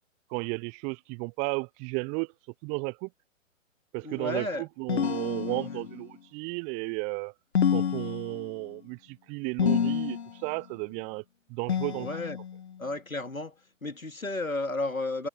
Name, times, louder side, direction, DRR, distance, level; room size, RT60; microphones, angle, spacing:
voice 1, 0.3-2.3 2.6-3.1 3.9-7.3 7.7-11.2 11.5-12.1, right 33 dB, 20° right, 1.0 m, -34 dB
voice 2, 4.0-4.6 5.4-5.8 11.9-12.4 12.8-13.5 13.8-15.3, left 2 dB, 85° left, 3.0 m, -33 dB
sound 1, 4.9-6.1 7.5-8.7 9.6-10.5 11.7-12.7, left 8 dB, 50° left, 1.9 m, -28 dB
figure-of-eight pair, 130°, 40 cm